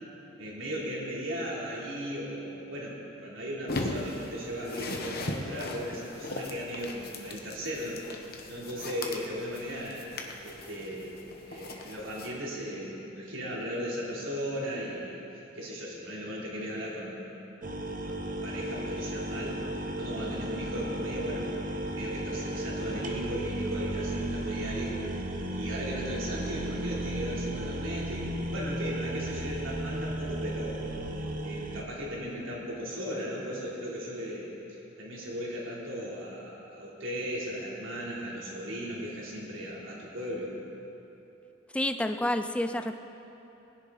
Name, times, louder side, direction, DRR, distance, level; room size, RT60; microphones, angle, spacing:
voice 1, 0.4-8.0 8.5-10.1 10.4-11.1 11.5-17.2 17.6-17.7 18.0-19.6 19.9-25.0 25.5-31.0 31.4-34.5 35.0-40.5, equal, 80° right, -5 dB, 3.6 m, -37 dB
sound 1, 3.7-12.3, left 2 dB, 50° left, 1.1 m, -39 dB
sound 2, 17.6-31.8, right 1 dB, 45° right, 0.9 m, -34 dB
voice 2, 41.7-43.0, left 1 dB, 5° left, 8 dB, 0.4 m, -29 dB
19.5 x 10.5 x 4.2 m, 2.9 s
head